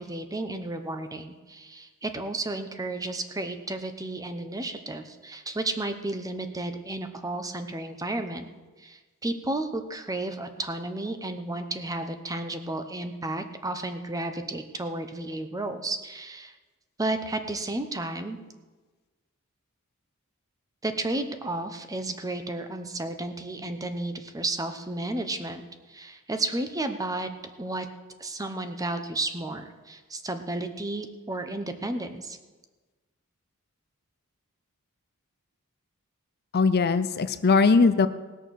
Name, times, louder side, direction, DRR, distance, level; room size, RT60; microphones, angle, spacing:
voice 1, 0.0-8.5 8.8-16.5 17.0-18.4 20.8-25.6 25.9-27.3 27.6-27.9 28.2-32.4, right 2 dB, 15° right, 7 dB, 0.9 m, -32 dB
voice 2, 36.5-38.1, left 4 dB, 45° left, 12 dB, 0.5 m, -20 dB
19.0 x 6.5 x 6.5 m, 1.3 s
head